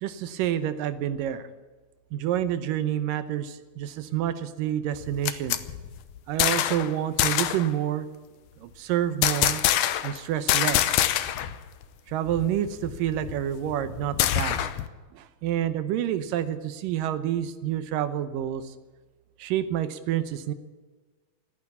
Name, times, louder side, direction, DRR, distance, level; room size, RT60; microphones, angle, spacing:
voice 1, 0.0-1.5 2.1-5.6 6.3-8.1 8.6-9.6 10.0-11.0 12.1-14.7 15.1-18.7 19.4-20.5, right 11 dB, 75° right, 12 dB, 2.3 m, -28 dB
sound 1, 4.9-6.9 7.2-7.7 9.2-10.2 10.5-11.6 11.8-11.9 12.3-14.9, left 12 dB, 75° left, 1.9 m, -25 dB
15.0 x 10.0 x 9.5 m, 1.3 s
omnidirectional pair, 4.3 m